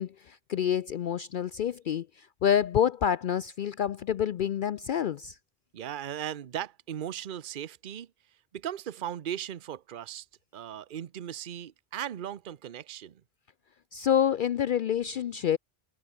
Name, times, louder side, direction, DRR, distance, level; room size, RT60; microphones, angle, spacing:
voice 1, 0.0-5.4 13.9-15.6, left 9 dB, 60° left, 0.6 m, -28 dB
voice 2, 5.7-8.1 8.5-10.3 10.5-13.2, right 10 dB, 55° right, 0.9 m, -37 dB
omnidirectional pair, 1.1 m